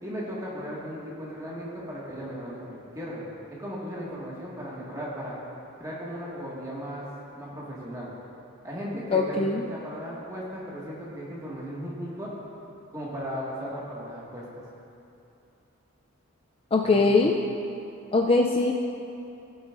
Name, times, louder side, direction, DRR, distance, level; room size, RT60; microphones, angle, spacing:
voice 1, 0.0-5.4 5.8-7.1 7.4-8.1 8.6-12.3 12.9-14.6 16.8-17.2, equal, 15° right, -6 dB, 1.7 m, -36 dB
voice 2, 9.1-9.6 16.7-17.3 18.1-18.7, left 3 dB, 25° left, 1 dB, 0.4 m, -21 dB
16.5 x 8.0 x 2.5 m, 2.8 s
head